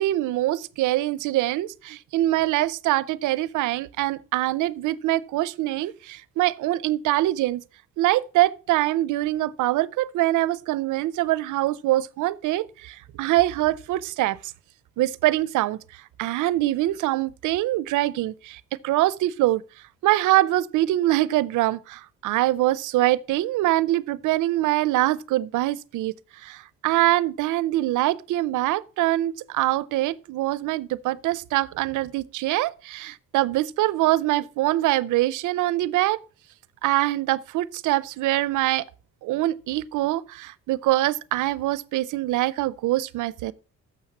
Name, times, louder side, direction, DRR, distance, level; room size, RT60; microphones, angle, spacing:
voice 1, 0.0-7.6 8.0-14.4 15.0-15.8 16.2-19.6 20.0-26.1 26.4-36.2 36.8-38.8 39.2-43.5, right 16 dB, 85° right, 0.6 m, -24 dB
7.2 x 6.2 x 5.8 m
cardioid pair, 90°, 30 cm